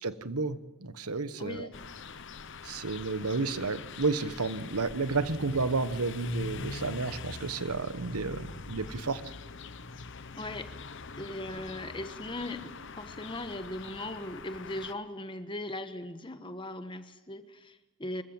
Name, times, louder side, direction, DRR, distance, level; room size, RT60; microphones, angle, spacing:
voice 1, 0.0-1.7 2.6-9.2, right 3 dB, 90° right, 1.3 m, -31 dB
voice 2, 1.4-1.8 10.4-10.7 11.2-18.2, left 1 dB, 20° left, 1.3 m, -39 dB
sound 1, 1.7-14.9, left 4 dB, 55° left, 0.9 m, -43 dB
25.5 x 15.5 x 9.0 m
head